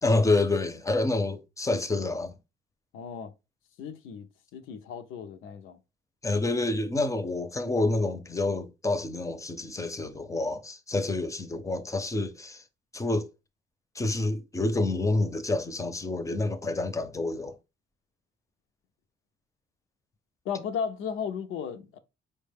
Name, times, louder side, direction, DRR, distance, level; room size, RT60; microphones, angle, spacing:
voice 1, 0.0-2.3 6.2-12.6 12.9-13.3 14.0-17.5, left 2 dB, 15° left, 0.5 m, -28 dB
voice 2, 2.9-3.3 3.8-4.3 4.5-5.8 20.5-22.0, left 7 dB, 90° left, 0.5 m, -35 dB
4.6 x 2.2 x 3.3 m
cardioid pair, 90°, 20 cm